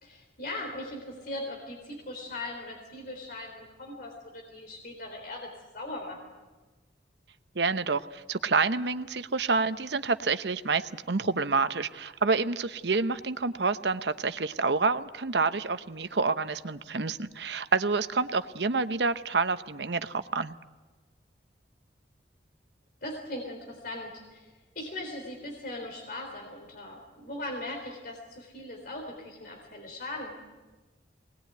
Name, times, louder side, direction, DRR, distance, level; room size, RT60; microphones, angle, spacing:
voice 1, 0.0-5.5 5.7-6.2 23.0-30.3, left 1 dB, 50° left, 1 dB, 3.9 m, -39 dB
voice 2, 7.5-20.6, right 4 dB, 65° right, 11 dB, 0.9 m, -28 dB
22.0 x 19.5 x 9.3 m, 1.2 s
head